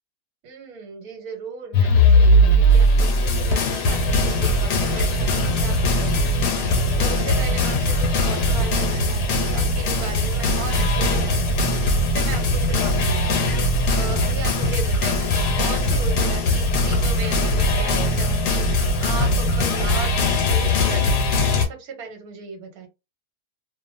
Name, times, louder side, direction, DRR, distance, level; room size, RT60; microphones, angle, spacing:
voice 1, 0.4-6.7 7.0-13.5 13.9-22.9, right 5 dB, 65° right, 4 dB, 1.3 m, -36 dB
sound 1, 1.7-21.7, left 1 dB, 85° left, 1.3 m, -20 dB
2.7 x 2.4 x 2.5 m, 0.25 s
omnidirectional pair, 1.7 m